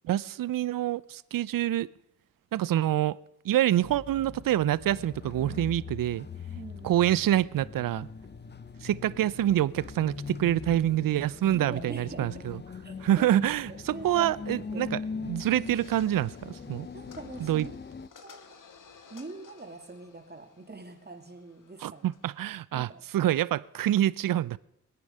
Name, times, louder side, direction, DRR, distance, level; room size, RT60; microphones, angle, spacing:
voice 1, 0.0-1.9 2.5-3.2 3.4-6.3 6.8-8.1 8.8-12.6 13.0-16.9 17.4-17.7 21.8-24.6, right 12 dB, 70° right, 20 dB, 0.5 m, -26 dB
sound 1, 3.7-18.1, left 5 dB, 30° left, 0.7 m, -41 dB
voice 2, 6.5-7.0 11.5-12.4 12.8-13.3 13.9-15.0 16.9-17.8 18.2-18.5 19.1-22.1 22.7-23.0, right 3 dB, 30° right, 3 dB, 2.7 m, -43 dB
sound 2, 15.3-22.5, left 6 dB, 65° left, 1.4 m, -56 dB
23.0 x 8.5 x 5.5 m, 0.82 s
cardioid pair, 60°, 35 cm